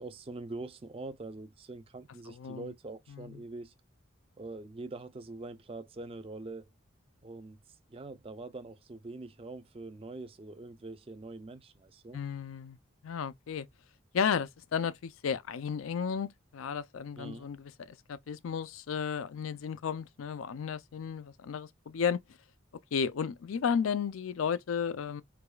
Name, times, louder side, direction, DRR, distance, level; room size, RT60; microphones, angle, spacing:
voice 1, 0.0-3.7 4.4-6.7 7.2-7.6 7.9-12.2 17.2-17.5, right 2 dB, 25° right, 0.4 m, -44 dB
voice 2, 2.3-2.7 3.1-3.4 12.1-12.8 13.0-13.7 14.1-22.2 22.9-25.2, left 6 dB, 85° left, 0.4 m, -33 dB
4.7 x 2.3 x 2.3 m
head